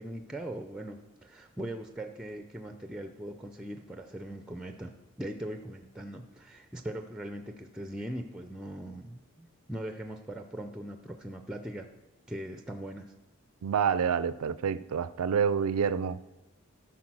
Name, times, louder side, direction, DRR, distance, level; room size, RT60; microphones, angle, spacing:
voice 1, 0.0-11.9 12.3-13.1, right 1 dB, 5° right, 0.4 m, -40 dB
voice 2, 13.6-16.2, right 7 dB, 85° right, 0.4 m, -28 dB
13.5 x 4.6 x 6.0 m
head